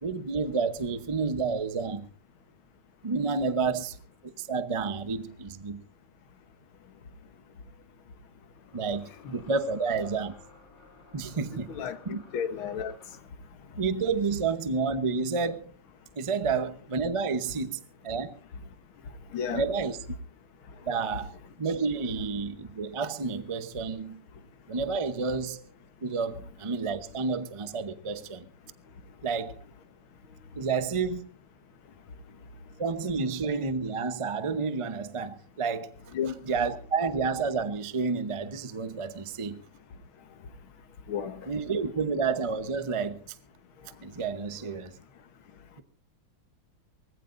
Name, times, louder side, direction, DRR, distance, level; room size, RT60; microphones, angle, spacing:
voice 1, 0.0-2.1 3.0-4.0 4.2-5.8 8.7-10.4 11.1-11.8 12.1-12.2 13.8-15.7 16.2-18.4 19.5-20.0 20.8-24.2 24.7-25.7 26.0-28.5 29.2-29.6 30.5-31.3 32.8-35.9 36.5-39.6 41.5-43.4 44.0-45.0, right 4 dB, 45° right, 0.4 m, -30 dB
sound 1, 8.6-13.4, left 4 dB, 65° left, 4.2 m, -55 dB
voice 2, 11.4-12.9 19.3-19.6 36.1-36.3 41.1-41.4, left 7 dB, 85° left, 2.1 m, -33 dB
23.5 x 19.0 x 2.6 m
omnidirectional pair, 2.2 m